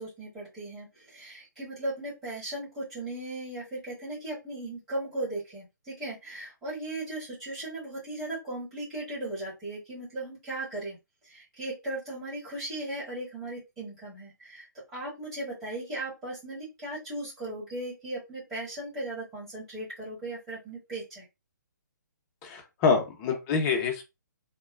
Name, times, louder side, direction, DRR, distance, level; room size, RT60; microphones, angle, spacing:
voice 1, 0.0-11.0 11.2-21.2, right 1 dB, 20° right, -9 dB, 1.4 m, -37 dB
voice 2, 22.4-24.0, left 5 dB, 20° left, 3 dB, 0.6 m, -26 dB
2.9 x 2.2 x 2.4 m, 0.24 s
figure-of-eight pair, 130°, 10 cm